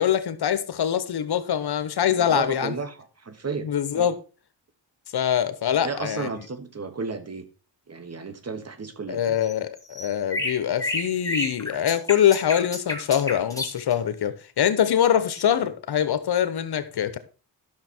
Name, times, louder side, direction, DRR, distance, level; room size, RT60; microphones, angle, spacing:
voice 1, 0.0-2.7 3.6-4.2 5.1-6.3 9.1-17.2, left 9 dB, 70° left, 1.1 m, -23 dB
voice 2, 2.1-3.7 3.9-4.1 5.8-7.4 7.9-9.4 15.6-15.7, right 4 dB, 35° right, 1.7 m, -33 dB
sound 1, 9.4-13.9 15.4-15.5, left 2 dB, 10° left, 2.6 m, -30 dB
12.0 x 6.3 x 4.5 m
cardioid pair, 85°, 41 cm